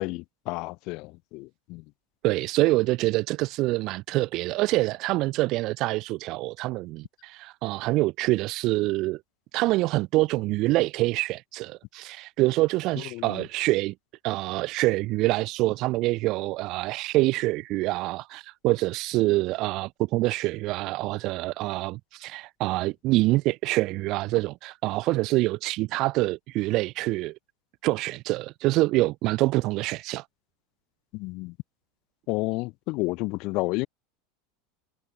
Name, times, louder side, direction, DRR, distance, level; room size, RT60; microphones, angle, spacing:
voice 1, 0.0-1.8 13.1-13.4 31.1-31.5 32.3-33.9, left 24 dB, 55° left, 2.3 m, -31 dB
voice 2, 2.2-9.2 9.5-13.9 14.2-27.4 27.8-30.3, right 19 dB, 50° right, 2.0 m, -26 dB
supercardioid pair, 135°, 0 cm